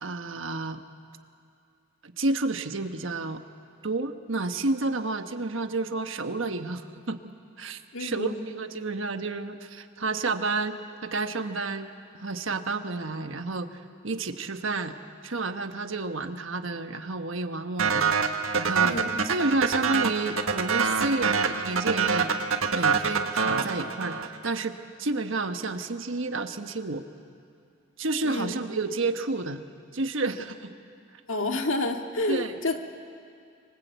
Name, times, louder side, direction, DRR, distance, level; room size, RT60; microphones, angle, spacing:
voice 1, 0.0-0.8 2.0-3.4 3.8-7.2 7.6-11.9 12.1-14.9 15.2-18.1 18.5-19.0 19.2-22.3 22.7-27.0 28.0-29.7 29.9-30.7 32.3-32.6, right 3 dB, 70° right, 7 dB, 1.3 m, -30 dB
voice 2, 7.9-8.3 18.8-19.2 28.2-28.5 31.3-32.8, left 2 dB, 70° left, 4 dB, 2.0 m, -29 dB
sound 1, 17.8-24.5, right 5 dB, 85° right, 1.5 m, -25 dB
27.5 x 26.0 x 8.2 m, 2.4 s
head